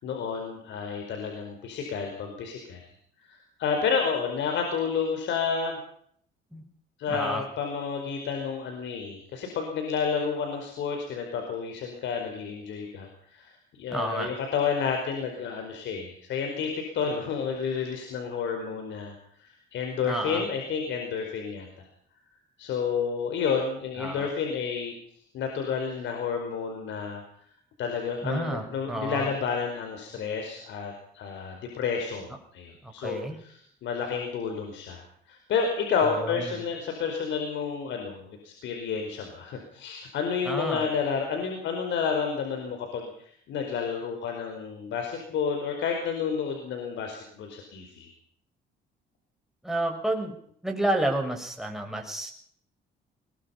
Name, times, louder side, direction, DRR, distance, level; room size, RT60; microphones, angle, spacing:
voice 1, 0.0-2.9 3.2-5.8 7.0-19.1 19.4-21.9 22.6-24.9 25.3-27.2 27.8-48.1, left 6 dB, 75° left, 4 dB, 5.0 m, -30 dB
voice 2, 7.1-7.4 13.9-14.3 20.0-20.4 24.0-24.3 28.2-29.3 33.0-33.4 36.2-36.6 40.4-40.9 49.6-50.3 50.6-52.3, right 1 dB, ahead, 2 dB, 6.5 m, -30 dB
22.0 x 21.5 x 5.8 m, 0.65 s
cardioid pair, 95°, 19 cm